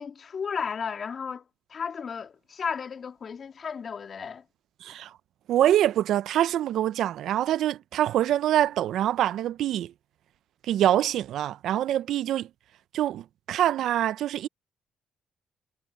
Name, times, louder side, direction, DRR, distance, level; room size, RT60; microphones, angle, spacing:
voice 1, 0.0-1.4 1.7-4.4, left 6 dB, 50° left, 2.6 m, -34 dB
voice 2, 5.5-9.9 10.7-12.5 12.9-14.5, right 12 dB, 80° right, 0.4 m, -25 dB
cardioid pair, 90°, 0 cm